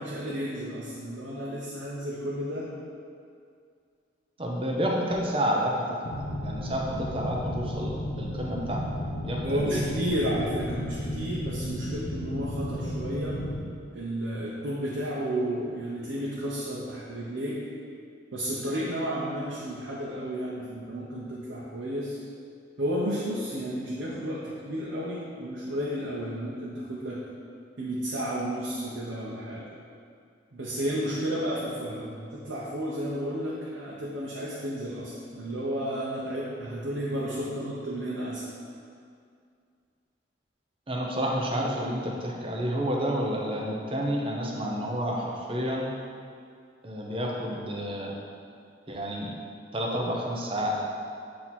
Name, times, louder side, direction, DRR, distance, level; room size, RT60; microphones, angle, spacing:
voice 1, 0.0-2.7 9.4-13.4 13.9-17.6 18.3-22.2 22.8-27.2 27.8-29.7 30.5-38.4, equal, 75° right, -6 dB, 0.7 m, -32 dB
voice 2, 4.4-8.8 9.2-9.8 40.9-45.9 46.8-48.2 48.9-49.3 49.7-50.8, equal, 30° right, -1 dB, 0.6 m, -30 dB
sound 1, 6.0-13.6, equal, 80° left, 0.9 m, -33 dB
7.9 x 2.8 x 4.2 m, 2.3 s
head